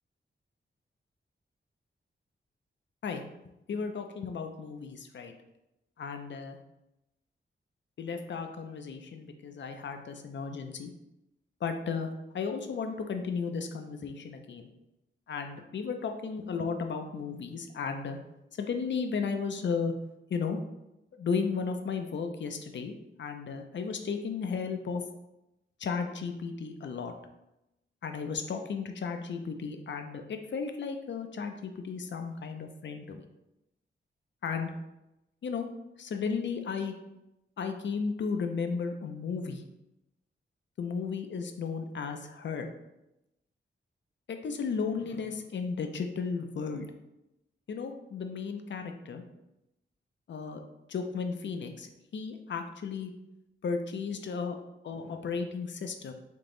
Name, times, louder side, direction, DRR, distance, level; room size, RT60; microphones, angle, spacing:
voice 1, 3.7-5.3 6.0-6.6 8.0-10.9 11.6-12.1 12.3-14.7 15.3-18.2 18.6-19.9 20.3-20.6 21.2-22.9 23.2-25.0 25.8-27.1 28.0-33.2 34.4-34.7 35.4-35.7 36.0-36.9 37.6-39.6 40.8-42.7 44.3-46.9 47.7-49.2 50.3-50.6 50.9-53.1 53.6-54.5 54.8-56.1, left 5 dB, 65° left, 6 dB, 0.5 m, -34 dB
3.7 x 2.9 x 3.8 m, 0.89 s
wide cardioid pair, 105°, 21 cm